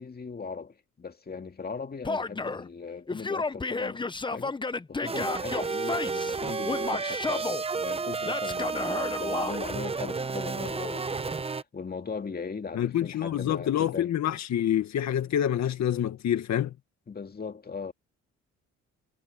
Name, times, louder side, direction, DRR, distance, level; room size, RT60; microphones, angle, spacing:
voice 1, 0.0-4.6 4.9-11.4 11.7-14.1 15.3-15.4 17.1-17.9, left 5 dB, 30° left, 2.2 m, -39 dB
Male speech man speaking / Yell, 2.0-2.7 3.1-6.4 6.6-7.6 8.2-9.6, left 3 dB, 15° left, 0.8 m, -32 dB
sound 1, 5.1-11.6, right 4 dB, 20° right, 0.7 m, -32 dB
voice 2, 12.8-16.7, left 10 dB, 65° left, 1.8 m, -27 dB
cardioid pair, 90°, 30 cm